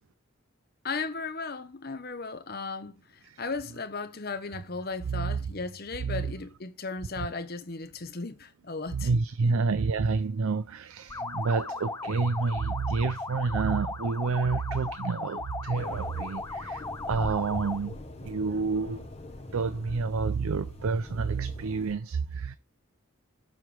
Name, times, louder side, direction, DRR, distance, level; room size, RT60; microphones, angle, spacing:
voice 1, 0.8-3.0 3.4-9.1 9.4-9.6, left 4 dB, 45° left, 0.9 m, -36 dB
voice 2, 5.1-5.5 6.0-6.3 7.2-7.3 8.9-16.8 17.1-19.1 19.5-22.6, right 4 dB, 90° right, 0.5 m, -29 dB
sound 1, 11.1-17.9, left 3 dB, 15° left, 0.4 m, -37 dB
sound 2, 15.7-22.0, left 1 dB, 30° left, 1.1 m, -42 dB
7.6 x 3.3 x 6.2 m
head